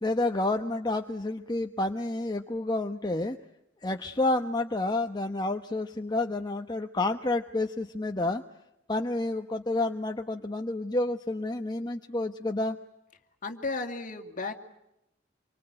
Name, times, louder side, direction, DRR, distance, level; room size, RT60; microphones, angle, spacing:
voice 1, 0.0-3.4 3.8-8.4 8.9-12.8, left 2 dB, 20° left, 5 dB, 1.0 m, -29 dB
voice 2, 13.4-14.5, left 3 dB, 45° left, 6 dB, 2.5 m, -34 dB
27.0 x 24.0 x 8.8 m, 0.86 s
head